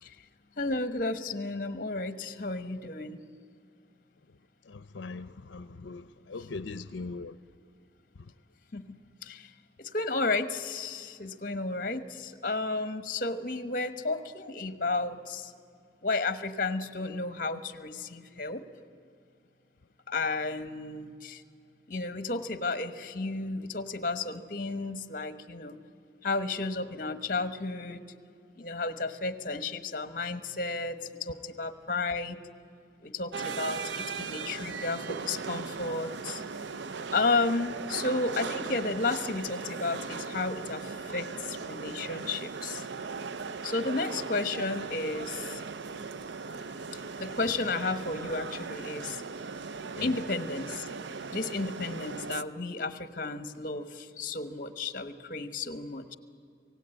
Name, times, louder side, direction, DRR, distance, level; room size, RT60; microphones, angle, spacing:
voice 1, 0.6-3.2 8.7-9.5 9.8-15.5 16.0-18.6 20.1-21.4 21.9-25.8 26.2-28.0 28.6-32.4 33.0-36.4 37.1-42.9 43.6-45.6 47.2-49.2 50.0-50.9 51.3-56.1, left 3 dB, 45° left, 1.1 m, -32 dB
voice 2, 4.7-7.4 8.2-8.3 50.0-50.2, left 3 dB, 85° left, 0.6 m, -40 dB
sound 1, 33.3-52.4, right 5 dB, 75° right, 0.6 m, -38 dB
27.0 x 17.5 x 9.0 m
head